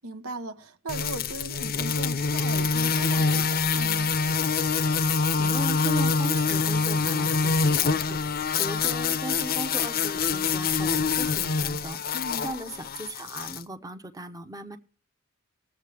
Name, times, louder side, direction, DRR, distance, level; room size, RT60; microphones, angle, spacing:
voice 1, 0.0-4.1 12.1-12.5, right 2 dB, 90° right, 1.1 m, -38 dB
sound 1, 0.9-13.6, left 5 dB, 45° left, 0.6 m, -25 dB
voice 2, 5.4-8.2 8.6-12.0 12.4-14.8, right 1 dB, 15° right, 0.8 m, -37 dB
20.0 x 7.5 x 3.4 m
head